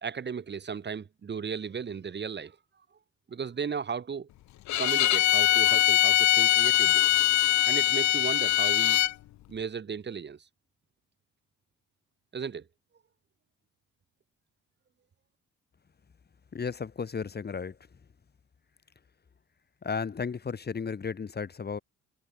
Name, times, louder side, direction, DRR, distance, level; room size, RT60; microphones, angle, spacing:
voice 1, 0.0-2.6 3.3-4.3 4.8-7.1 7.3-9.0 9.5-10.5 12.3-12.7, right 6 dB, 35° right, 1.3 m, -35 dB
Bowed string instrument, 4.7-9.1, left 14 dB, 70° left, 0.7 m, -22 dB
voice 2, 16.5-17.8 19.8-21.8, left 5 dB, 35° left, 1.5 m, -34 dB
cardioid pair, 90°, 30 cm